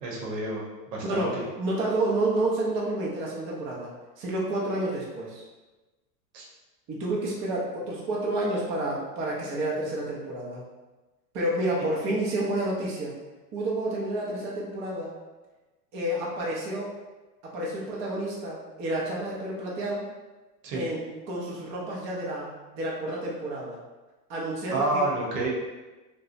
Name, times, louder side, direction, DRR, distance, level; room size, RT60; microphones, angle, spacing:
voice 1, 0.0-1.3 6.3-6.5 20.6-20.8 24.7-25.5, right 2 dB, 75° right, -3 dB, 0.9 m, -29 dB
voice 2, 1.0-3.9 4.2-5.4 6.9-10.6 11.3-13.1 13.5-15.1 15.9-17.0 17.4-20.1 20.7-23.8 24.3-25.1, right 1 dB, 25° right, -4 dB, 0.5 m, -30 dB
2.8 x 2.2 x 2.5 m, 1.2 s
hypercardioid pair, 120°, 48 cm